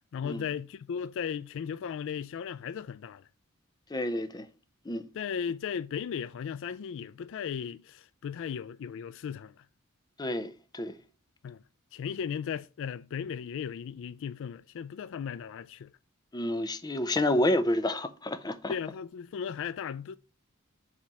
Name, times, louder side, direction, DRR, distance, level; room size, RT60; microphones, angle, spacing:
voice 1, 0.1-3.2 5.1-9.5 11.4-11.6 11.9-15.9 18.7-20.2, left 7 dB, 60° left, 0.3 m, -36 dB
voice 2, 3.9-4.5 4.9-5.0 10.2-11.0 16.3-18.7, left 1 dB, 20° left, 0.6 m, -29 dB
7.4 x 3.3 x 5.3 m
head